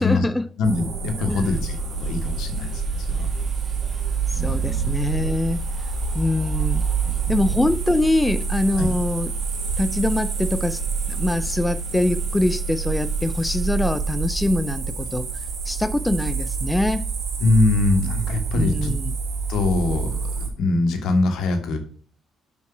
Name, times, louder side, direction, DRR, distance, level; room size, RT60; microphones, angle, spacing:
voice 1, 0.0-0.4 1.3-1.5 4.3-5.6 6.1-6.8 7.3-9.3 9.8-10.8 11.1-15.3 15.6-17.0 18.5-19.1, left 1 dB, 15° left, 0.4 m, -23 dB
voice 2, 0.6-3.3 4.3-4.8 7.0-7.6 8.7-8.9 17.4-18.9 19.5-21.8, left 2 dB, 70° left, 1.4 m, -23 dB
sound 1, 0.6-20.5, right 5 dB, 65° right, 1.8 m, -28 dB
sound 2, 1.3-14.7, right 5 dB, 50° right, 1.3 m, -32 dB
5.7 x 4.4 x 5.8 m
supercardioid pair, 60°, 0 cm